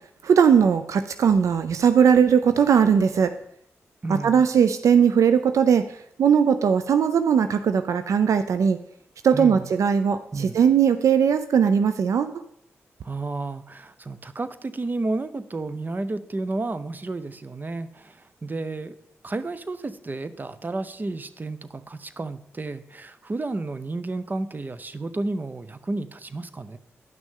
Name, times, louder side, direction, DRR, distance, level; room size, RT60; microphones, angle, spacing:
voice 1, 0.2-3.3 4.1-5.8 6.2-8.8 9.2-12.3, right 7 dB, 70° right, 10 dB, 0.4 m, -19 dB
voice 2, 4.0-4.4 9.3-9.6 10.3-10.6 13.0-18.9 19.2-26.8, right 2 dB, 35° right, 13 dB, 0.6 m, -31 dB
10.5 x 6.1 x 3.7 m, 0.75 s
supercardioid pair, 45°, 6 cm